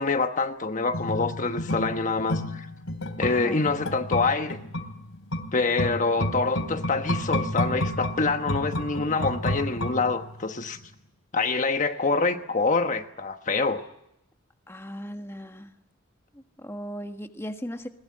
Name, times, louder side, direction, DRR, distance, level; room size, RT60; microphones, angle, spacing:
voice 1, 0.0-2.7 3.2-4.6 5.5-10.8 11.3-13.8, left 3 dB, 40° left, 6 dB, 1.2 m, -26 dB
sound 1, 0.9-10.5 10.8-10.9, left 1 dB, 85° left, 2.9 m, -31 dB
voice 2, 3.2-3.6 14.7-15.7 16.3-17.9, equal, 15° left, 6 dB, 1.5 m, -37 dB
22.0 x 20.0 x 9.7 m, 0.81 s
head